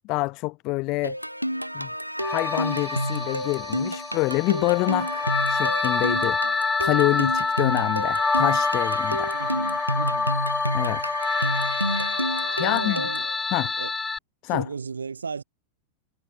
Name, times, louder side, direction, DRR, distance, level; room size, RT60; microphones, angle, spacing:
voice 1, 0.0-1.2 1.7-1.9 2.3-6.4 6.8-9.3 10.7-11.0 12.5-13.0 13.5-13.7 14.4-14.7, left 24 dB, 40° left, 0.7 m, -26 dB
sound 1, 1.0-13.3, equal, 90° right, 0.9 m, -30 dB
sound 2, 2.2-14.2, left 4 dB, 10° left, 0.5 m, -27 dB
voice 2, 9.3-10.3 12.6-13.3 13.6-13.9 14.5-15.4, right 5 dB, 75° right, 3.2 m, -35 dB
figure-of-eight pair, 90°, 0 cm